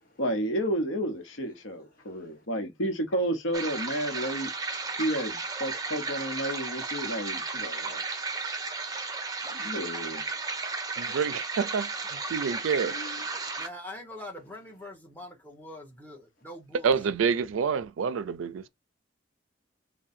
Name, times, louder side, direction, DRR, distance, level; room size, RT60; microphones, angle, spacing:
voice 1, 0.2-4.5 4.9-8.0 9.5-10.2 12.8-13.3, right 1 dB, 80° left, 0.9 m, -31 dB
voice 2, 1.9-2.5 4.8-5.0 13.2-13.5, left 1 dB, 45° left, 1.4 m, -64 dB
sound 1, 3.5-13.7, right 4 dB, 20° right, 0.6 m, -34 dB
voice 3, 11.0-11.9 12.3-12.9 16.8-18.6, right 6 dB, 85° right, 0.4 m, -27 dB
voice 4, 13.6-17.1, left 1 dB, 10° left, 1.1 m, -43 dB
3.6 x 2.2 x 4.1 m
head